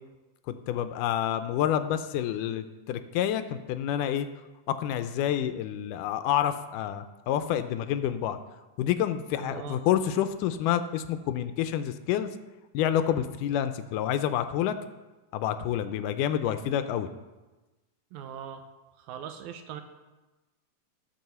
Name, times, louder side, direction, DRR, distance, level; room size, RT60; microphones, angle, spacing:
voice 1, 0.5-4.3 4.7-8.4 8.8-12.3 12.7-14.8 15.3-17.1, left 10 dB, 85° left, 10 dB, 2.2 m, -28 dB
voice 2, 9.3-9.8 18.1-18.7 19.0-19.8, right 8 dB, 80° right, 8 dB, 1.9 m, -40 dB
14.0 x 4.7 x 6.8 m, 1.1 s
omnidirectional pair, 3.7 m